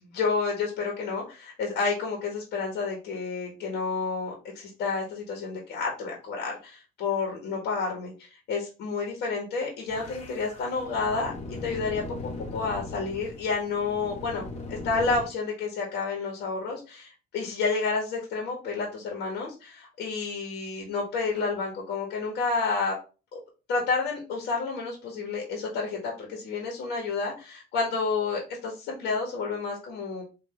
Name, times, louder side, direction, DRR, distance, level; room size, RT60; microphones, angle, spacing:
voice 1, 0.0-11.3 11.6-22.9 23.3-23.4 23.7-30.2, left 4 dB, 80° left, 0 dB, 1.6 m, -30 dB
sound 1, 9.9-15.2, left 2 dB, 40° left, 1.5 m, -39 dB
4.1 x 3.0 x 4.4 m, 0.32 s
cardioid pair, 110°, 17 cm